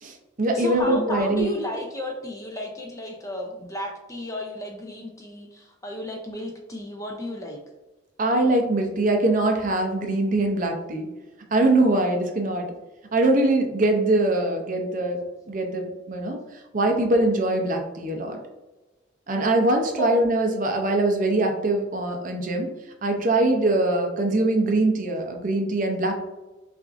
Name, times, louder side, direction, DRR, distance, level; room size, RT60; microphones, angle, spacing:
voice 1, 0.0-1.5 8.2-11.1 11.5-12.6 13.1-15.2 15.5-16.4 16.7-18.4 19.3-22.7 23.0-26.2, right 2 dB, 40° right, 3 dB, 0.5 m, -22 dB
voice 2, 0.5-7.6 20.0-20.1, left 1 dB, 15° left, 1 dB, 0.4 m, -33 dB
5.8 x 2.5 x 2.5 m, 1.1 s
head